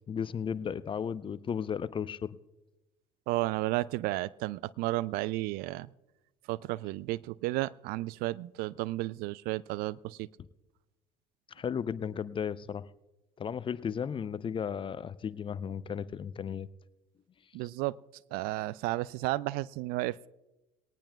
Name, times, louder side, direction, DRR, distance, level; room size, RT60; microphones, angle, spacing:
voice 1, 0.1-2.4 11.5-12.9 13.4-16.7, left 7 dB, 30° left, 17 dB, 0.6 m, -35 dB
voice 2, 3.3-5.9 6.5-10.3 17.5-18.0 18.3-20.3, right 18 dB, 60° right, 21 dB, 0.4 m, -33 dB
19.5 x 18.5 x 2.3 m, 1.0 s
hypercardioid pair, 65°, 18 cm